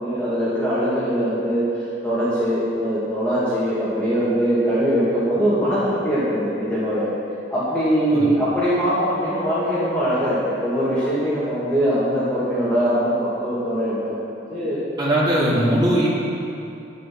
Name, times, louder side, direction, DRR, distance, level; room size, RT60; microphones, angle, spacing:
voice 1, 0.0-1.6 2.0-7.1 7.5-14.8 15.5-15.9, equal, 5° left, -12 dB, 2.6 m, -22 dB
voice 2, 15.0-16.1, right 1 dB, 25° right, -6 dB, 2.8 m, -19 dB
10.5 x 10.0 x 6.1 m, 2.8 s
head